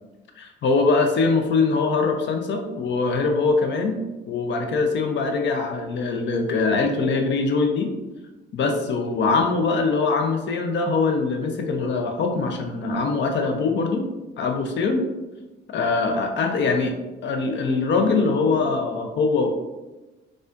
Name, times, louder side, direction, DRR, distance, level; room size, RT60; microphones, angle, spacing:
voice 1, 0.4-4.0 4.3-7.9 8.5-14.1 14.4-15.0 15.7-17.0 17.2-19.5, left 4 dB, 65° left, 4 dB, 0.6 m, -22 dB
4.1 x 2.4 x 2.5 m, 1.1 s
cardioid pair, 90°, 20 cm